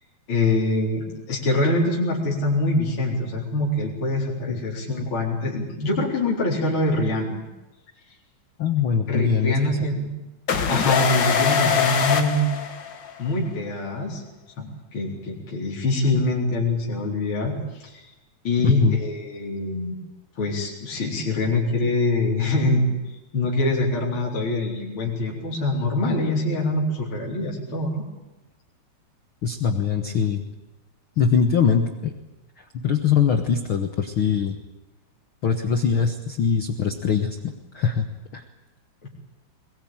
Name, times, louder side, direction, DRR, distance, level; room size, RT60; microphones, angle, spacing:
voice 1, 0.3-7.5 9.1-10.1 10.7-12.5 13.2-14.2 14.6-18.1 18.4-20.0 20.4-22.9 23.3-28.0, left 2 dB, 35° left, -4 dB, 4.5 m, -24 dB
voice 2, 8.6-9.8 18.6-19.0 29.4-30.4 31.2-32.1 32.8-34.6 35.4-37.4 37.7-38.1 38.3-38.4, left 6 dB, 85° left, 6 dB, 1.1 m, -22 dB
sound 1, 10.5-13.3, left 6 dB, 55° left, 1.3 m, -23 dB
22.5 x 20.5 x 8.9 m, 0.99 s
omnidirectional pair, 4.4 m